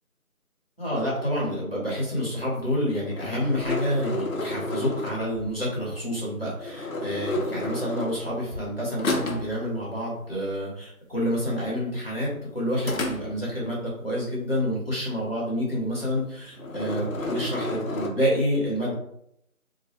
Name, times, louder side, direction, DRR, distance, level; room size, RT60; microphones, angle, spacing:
voice 1, 0.8-18.9, equal, 40° left, -6 dB, 0.9 m, -28 dB
sound 1, 2.8-5.6 6.6-8.7 9.0-9.6 12.8-13.7 16.0-16.3 16.6-18.1, left 1 dB, 70° left, 0.6 m, -31 dB
2.1 x 2.1 x 2.8 m, 0.75 s
figure-of-eight pair, 180°, 44 cm